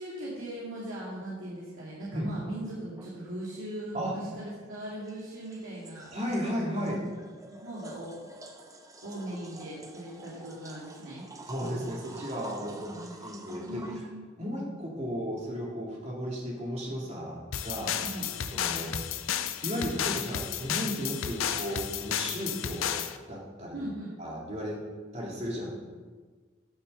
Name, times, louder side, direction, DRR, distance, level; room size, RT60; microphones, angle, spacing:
voice 1, 0.0-6.1 7.6-8.1 9.0-11.2 12.9-14.3 18.1-18.3 23.7-24.2, right 1 dB, 85° right, -7 dB, 2.5 m, -39 dB
sound 1, 3.0-3.1 4.8-14.0, right 2 dB, 15° right, 0.9 m, -48 dB
voice 2, 6.1-7.1 11.5-14.1 14.4-17.4 17.6-18.1 18.5-18.9 19.6-23.8 24.2-24.8 25.1-25.7, equal, 35° right, -3 dB, 2.7 m, -34 dB
sound 2, 17.5-23.2, left 9 dB, 90° left, 0.6 m, -32 dB
10.0 x 6.7 x 6.9 m, 1.4 s
head